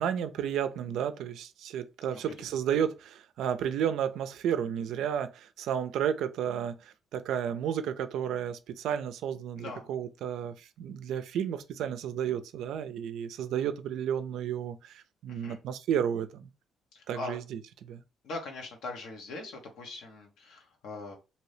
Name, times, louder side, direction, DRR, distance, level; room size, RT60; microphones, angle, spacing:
voice 1, 0.0-16.5 17.1-18.0, right 9 dB, 80° right, 0.4 m, -32 dB
voice 2, 9.6-9.9 15.3-15.6 16.9-17.4 18.2-21.2, left 3 dB, 80° left, 1.1 m, -41 dB
2.7 x 2.7 x 3.3 m
cardioid pair, 90°, 0 cm